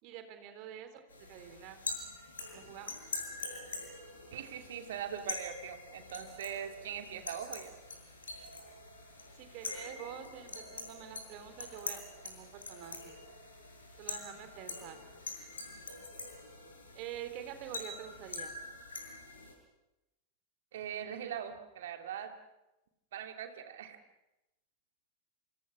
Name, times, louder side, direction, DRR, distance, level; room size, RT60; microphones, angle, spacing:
voice 1, 0.0-1.0 1.3-1.8 2.5-2.9 9.4-13.2 14.0-15.0 16.9-18.5, right 10 dB, 45° right, 9 dB, 3.6 m, -47 dB
sound 1, 1.1-19.5, left 3 dB, 70° left, 6.8 m, -45 dB
voice 2, 4.3-7.7 20.7-22.4 23.1-24.0, right 9 dB, 60° right, 5 dB, 2.7 m, -41 dB
27.5 x 27.0 x 6.2 m, 0.97 s
figure-of-eight pair, 90°, 0 cm